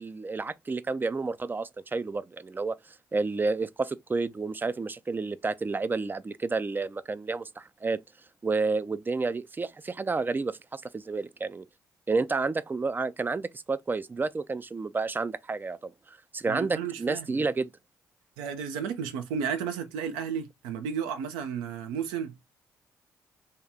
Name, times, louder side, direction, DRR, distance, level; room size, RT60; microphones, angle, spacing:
voice 1, 0.0-2.8 3.1-8.0 8.4-11.6 12.1-17.7, right 3 dB, 20° right, 0.4 m, -30 dB
voice 2, 16.5-17.5 18.4-22.4, right 7 dB, 70° right, 0.5 m, -33 dB
3.1 x 2.8 x 3.5 m
figure-of-eight pair, 40°, 9 cm